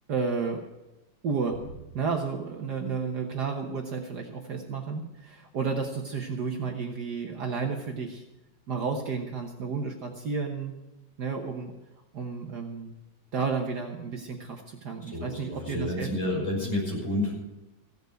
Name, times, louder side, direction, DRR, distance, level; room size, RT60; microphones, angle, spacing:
voice 1, 0.1-0.6 1.2-1.7 1.9-8.2 8.7-10.7 11.2-11.7 12.1-12.9 13.3-16.4, right 5 dB, 60° right, 2 dB, 1.7 m, -32 dB
voice 2, 15.0-17.3, left 1 dB, 35° left, -3 dB, 6.4 m, -30 dB
16.0 x 8.1 x 7.9 m, 0.96 s
omnidirectional pair, 2.2 m